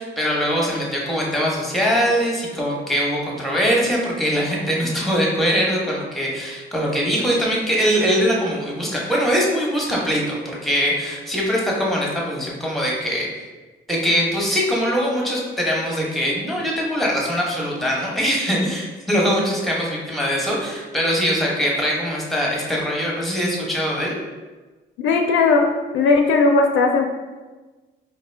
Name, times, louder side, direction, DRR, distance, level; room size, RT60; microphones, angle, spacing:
voice 1, 0.0-13.3 13.9-24.1, equal, ahead, -3 dB, 1.0 m, -22 dB
voice 2, 25.0-25.7 25.9-27.0, left 3 dB, 75° left, 3 dB, 0.4 m, -17 dB
4.6 x 2.1 x 3.3 m, 1.3 s
cardioid pair, 90°, 20 cm